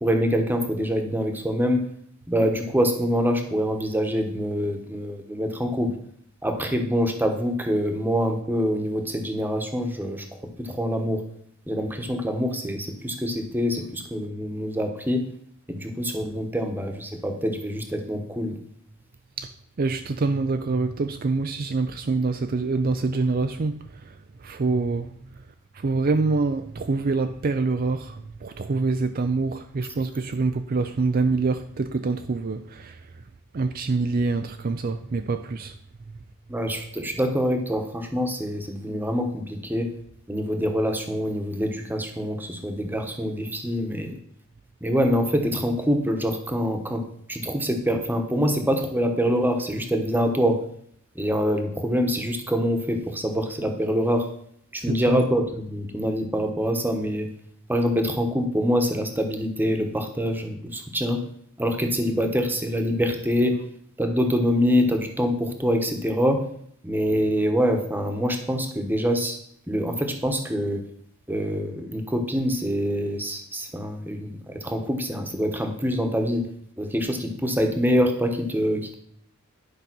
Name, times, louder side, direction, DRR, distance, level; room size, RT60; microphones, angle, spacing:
voice 1, 0.0-1.8 2.3-5.9 6.4-10.2 10.6-11.2 11.7-15.2 15.7-18.6 36.5-39.9 40.3-44.1 44.8-47.0 47.3-50.6 51.2-54.3 54.7-57.3 57.7-61.2 61.6-63.6 64.0-66.4 66.8-69.4 69.7-70.8 71.3-76.4 76.8-78.9, equal, 10° right, 1.1 m, -25 dB
voice 2, 19.8-24.1 24.4-25.1 25.7-33.0 33.5-35.8 54.9-55.2, right 3 dB, 45° right, 0.4 m, -25 dB
11.0 x 5.2 x 6.1 m
head